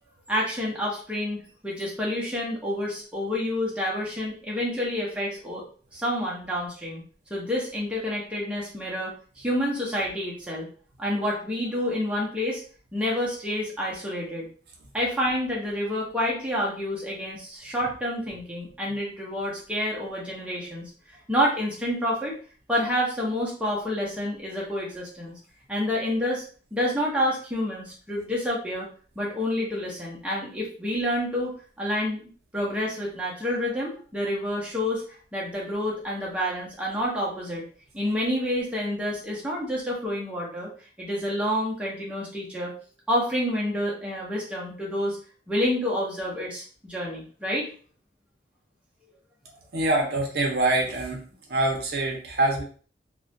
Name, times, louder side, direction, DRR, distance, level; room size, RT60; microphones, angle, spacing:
voice 1, 0.3-5.6 5.9-7.0 7.3-10.7 11.0-12.6 12.9-14.5 14.9-22.3 22.7-25.3 25.7-26.4 26.7-28.9 29.2-32.2 32.5-35.0 35.3-37.6 37.9-40.7 41.0-42.7 43.1-45.2 45.5-47.7, left 1 dB, 5° right, -5 dB, 0.5 m, -28 dB
voice 2, 49.7-51.2 51.5-52.6, right 2 dB, 55° right, 0 dB, 0.6 m, -24 dB
2.3 x 2.1 x 2.6 m, 0.42 s
head